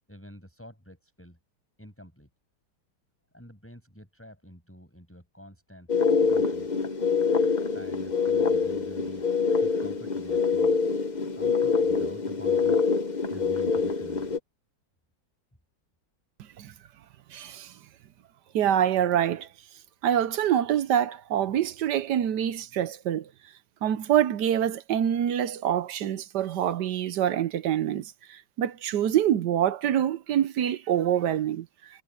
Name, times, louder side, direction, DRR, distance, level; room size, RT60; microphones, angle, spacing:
voice 1, 0.1-1.4 1.8-2.3 3.3-5.9 6.2-6.7 7.7-9.2 9.5-10.7 11.2-12.8 13.3-14.3, equal, 5° left, 7.1 m, -48 dB
sound 1, 5.9-14.4, left 5 dB, 30° left, 0.9 m, -25 dB
voice 2, 17.3-17.7 18.5-19.5 20.0-23.3 23.8-31.7, right 10 dB, 65° right, 1.2 m, -25 dB
omnidirectional pair, 2.2 m